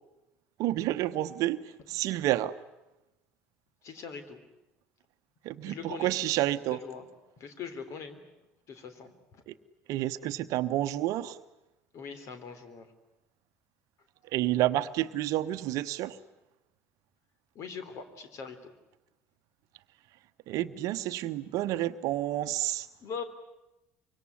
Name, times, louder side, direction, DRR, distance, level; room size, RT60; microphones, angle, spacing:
voice 1, 0.6-1.6 1.9-2.6 5.4-6.8 9.5-9.6 9.9-11.4 14.3-16.2 20.5-22.9, right 14 dB, 55° right, 12 dB, 1.0 m, -29 dB
voice 2, 3.8-4.4 5.7-6.1 6.7-7.1 7.4-8.2 8.7-9.4 11.9-12.9 17.6-18.6 23.0-23.2, left 6 dB, 50° left, 10 dB, 3.6 m, -41 dB
25.0 x 24.0 x 9.7 m, 0.95 s
figure-of-eight pair, 60°, 7 cm